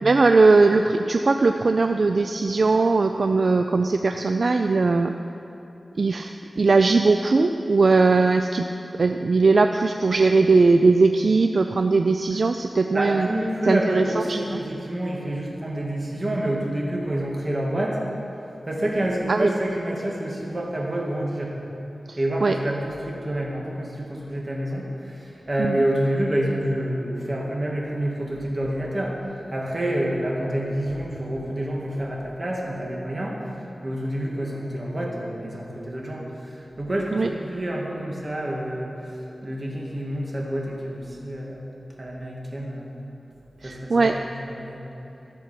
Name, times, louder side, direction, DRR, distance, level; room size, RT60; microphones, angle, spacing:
voice 1, 0.0-5.1 6.0-8.7 9.0-13.3 13.7-14.0 14.3-14.6 19.3-19.5 22.1-22.6 25.6-25.8 37.1-37.3 43.6-44.2, right 3 dB, 65° right, 7 dB, 0.3 m, -19 dB
voice 2, 12.9-18.0 18.7-21.6 22.2-41.6 42.0-42.9 43.6-44.8, right 1 dB, 40° right, -2 dB, 2.2 m, -28 dB
14.0 x 6.9 x 5.9 m, 2.9 s
wide cardioid pair, 55°, 0 cm